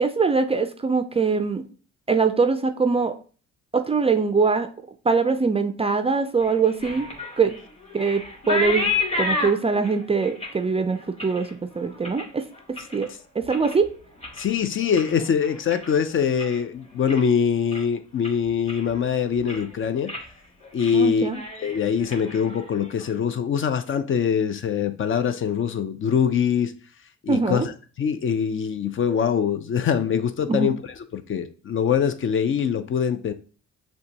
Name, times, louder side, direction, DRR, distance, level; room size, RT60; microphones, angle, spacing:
voice 1, 0.0-1.6 2.1-3.1 3.7-4.7 5.0-7.1 7.4-7.6 7.9-8.9 9.2-11.5 11.7-12.4 12.9-13.1 13.4-13.9 20.9-21.4 27.3-27.7 30.5-30.7, right 4 dB, 20° right, 8 dB, 0.3 m, -22 dB
sound 1, 6.4-13.1 13.4-13.9 14.2-16.6 16.9-17.4 17.7-17.8 18.2-19.0 19.3-19.7 20.1-20.3 20.6-21.0 21.2-23.1, left 3 dB, 20° left, 1.5 m, -31 dB
voice 2, 14.4-20.1 20.7-21.3 21.6-26.7 27.2-27.7 28.0-30.7 31.1-33.3, left 7 dB, 45° left, 10 dB, 0.5 m, -23 dB
6.6 x 2.3 x 2.8 m, 0.39 s
cardioid pair, 90°, 30 cm